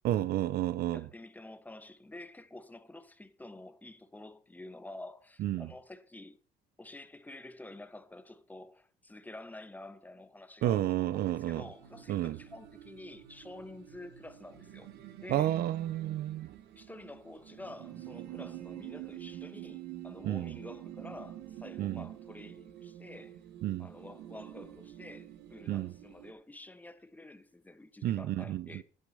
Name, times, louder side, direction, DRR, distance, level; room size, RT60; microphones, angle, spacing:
voice 1, 0.0-1.1 5.4-5.7 10.6-11.6 12.1-12.4 15.3-16.5 20.2-20.6 21.8-22.1 23.6-23.9 25.7-25.9 28.0-28.8, right 13 dB, 65° right, 0.6 m, -31 dB
voice 2, 0.9-6.4 6.8-14.9 15.2-15.6 16.7-23.4 23.8-28.8, left 2 dB, 10° left, 1.1 m, -49 dB
sound 1, 11.1-26.3, right 12 dB, 85° right, 1.3 m, -48 dB
10.0 x 8.2 x 5.4 m
cardioid pair, 110°, 17 cm